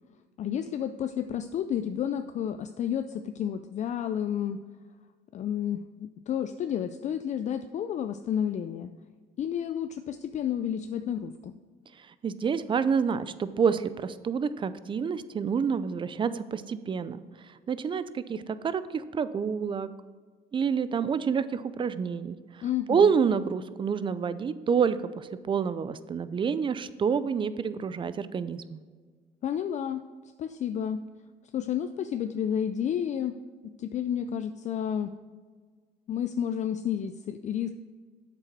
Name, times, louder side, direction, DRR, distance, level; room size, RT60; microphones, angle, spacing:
voice 1, 0.4-4.6 5.3-8.9 9.4-11.5 22.6-23.1 29.4-30.0 30.4-31.0 31.5-33.4 33.6-35.1 36.1-37.7, left 9 dB, 45° left, 9 dB, 0.4 m, -31 dB
voice 2, 12.2-17.2 17.7-19.9 20.5-22.4 22.9-28.8, right 6 dB, 30° right, 14 dB, 0.5 m, -28 dB
7.9 x 6.8 x 4.6 m, 1.5 s
cardioid pair, 110°, 17 cm